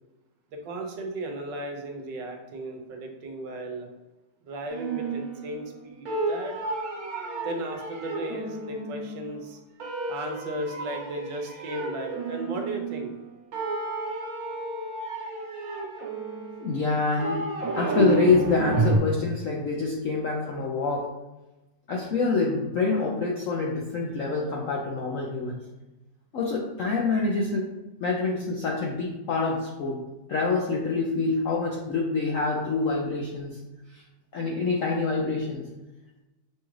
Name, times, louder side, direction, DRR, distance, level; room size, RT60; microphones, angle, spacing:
voice 1, 0.5-3.9 4.4-6.6 7.4-13.1, right 1 dB, 75° right, 3 dB, 1.4 m, -35 dB
sound 1, 4.7-5.8 6.0-9.4 9.8-13.3 13.5-19.0, right 3 dB, 55° right, 1.4 m, -31 dB
voice 2, 16.6-17.4 17.8-21.1 21.9-25.6 26.3-27.7 28.0-30.0 30.3-33.6 33.9-34.0 34.3-35.7, left 4 dB, 75° left, -2 dB, 0.7 m, -26 dB
6.7 x 2.4 x 3.1 m, 1.0 s
omnidirectional pair, 2.0 m